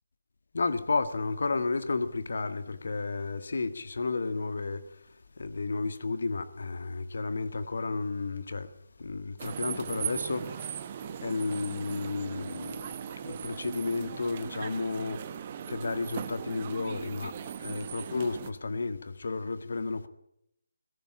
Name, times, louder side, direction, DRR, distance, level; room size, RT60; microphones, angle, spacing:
voice 1, 0.5-4.8 5.4-8.7 9.0-10.8 11.2-15.2 15.7-17.3 17.6-20.1, left 3 dB, 55° left, 1.6 m, -32 dB
sound 1, 9.4-18.5, right 8 dB, 30° right, 1.1 m, -38 dB
20.5 x 17.0 x 9.0 m
figure-of-eight pair, 150°, 0 cm